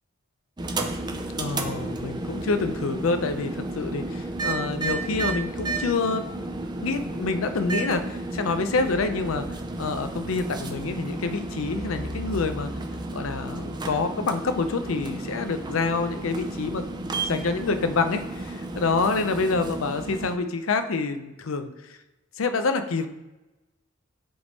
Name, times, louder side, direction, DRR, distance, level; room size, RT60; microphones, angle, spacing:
sound 1, 0.6-20.4, right 2 dB, 20° right, 0.5 m, -32 dB
voice 1, 1.4-6.5 6.8-9.5 9.8-12.7 13.1-16.8 17.2-21.7 22.4-23.1, left 4 dB, 80° left, 9 dB, 0.6 m, -27 dB
10.0 x 3.5 x 4.0 m, 1.0 s
head